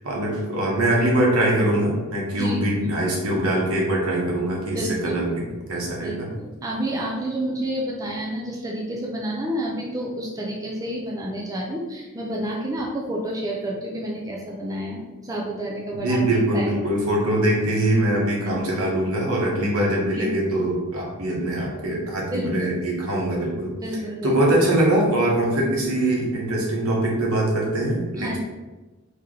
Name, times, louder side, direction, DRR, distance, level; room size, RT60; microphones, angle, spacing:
voice 1, 0.0-5.3 5.7-6.3 15.9-23.7 24.2-28.4, right 1 dB, 80° right, -3 dB, 1.0 m, -22 dB
voice 2, 4.8-5.2 6.0-16.2 16.5-16.7 20.2-20.3 22.3-22.7 23.8-24.4 28.2-28.4, right 1 dB, 15° right, -3 dB, 0.4 m, -29 dB
3.1 x 2.9 x 3.7 m, 1.2 s
head